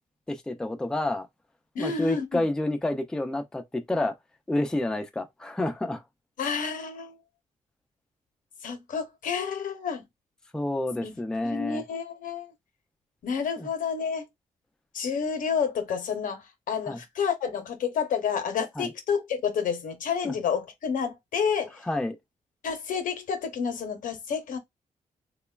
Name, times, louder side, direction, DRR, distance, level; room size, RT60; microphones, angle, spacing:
voice 1, 0.3-1.3 1.8-4.1 4.5-6.0 10.5-11.8 13.6-13.7 16.9-17.0 18.8-18.9 20.2-20.3 21.8-22.2, left 1 dB, 5° left, 0.4 m, -29 dB
voice 2, 1.8-2.4 6.4-7.1 8.6-10.0 11.0-11.1 11.4-12.5 13.2-14.2 14.9-16.4 16.7-21.7 22.6-24.6, left 6 dB, 80° left, 0.7 m, -29 dB
3.0 x 2.2 x 2.2 m
cardioid pair, 100°, 14 cm